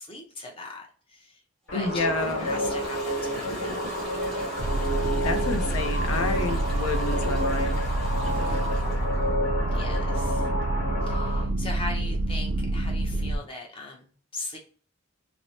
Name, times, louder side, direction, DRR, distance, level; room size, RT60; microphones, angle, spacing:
voice 1, 0.0-1.4 1.7-3.8 8.2-8.7 9.7-10.5 11.0-14.6, left 2 dB, 25° left, 0 dB, 0.7 m, -40 dB
voice 2, 1.7-2.4 5.2-7.8, left 3 dB, 80° left, 6 dB, 0.6 m, -29 dB
sound 1, 1.7-11.5, equal, 60° left, 1.3 m, -30 dB
Toilet flush, 1.7-9.3, equal, ahead, 1.1 m, -45 dB
sound 2, 4.6-13.4, right 2 dB, 60° right, 0.4 m, -27 dB
2.9 x 2.0 x 2.7 m, 0.41 s
head